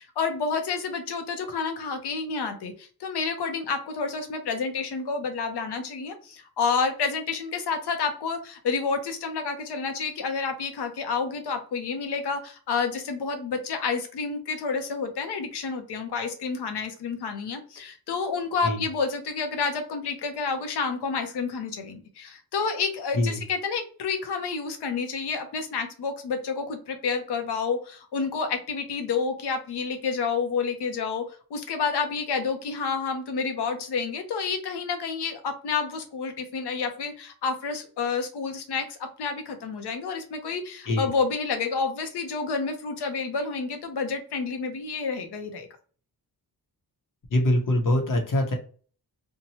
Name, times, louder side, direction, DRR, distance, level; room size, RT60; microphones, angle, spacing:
voice 1, 0.0-45.7, left 5 dB, 85° left, 6 dB, 0.7 m, -29 dB
voice 2, 47.3-48.5, left 1 dB, 55° left, 2 dB, 0.8 m, -23 dB
2.7 x 2.2 x 2.9 m, 0.42 s
wide cardioid pair, 170°, 39 cm